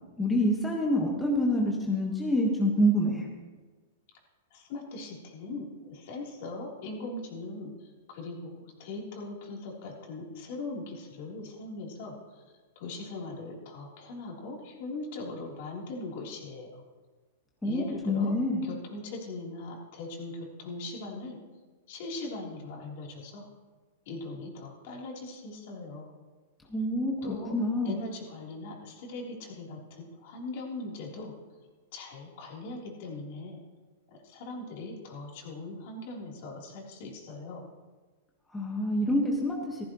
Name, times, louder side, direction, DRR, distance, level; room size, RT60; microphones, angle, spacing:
voice 1, 0.2-3.3 17.6-18.6 26.7-28.0 38.5-39.8, equal, 5° left, -2 dB, 1.5 m, -27 dB
voice 2, 4.5-12.4 12.8-16.8 17.6-18.3 18.6-21.4 21.9-23.5 24.1-26.1 27.2-27.5 27.8-31.3 31.9-33.6 34.2-37.6, left 2 dB, 55° left, -2 dB, 3.6 m, -40 dB
15.0 x 15.0 x 3.1 m, 1.3 s
hypercardioid pair, 145°, 0 cm